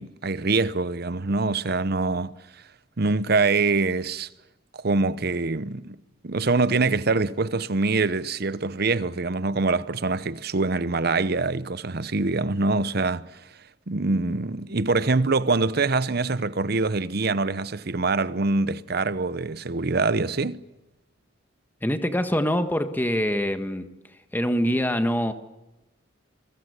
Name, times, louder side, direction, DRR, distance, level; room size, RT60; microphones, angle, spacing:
voice 1, 0.0-2.3 3.0-4.3 4.8-6.0 6.2-13.3 13.9-20.6, right 3 dB, 55° right, 0.9 m, -24 dB
voice 2, 21.8-23.9 24.3-25.3, equal, 10° left, 1.5 m, -24 dB
28.0 x 22.0 x 8.2 m
head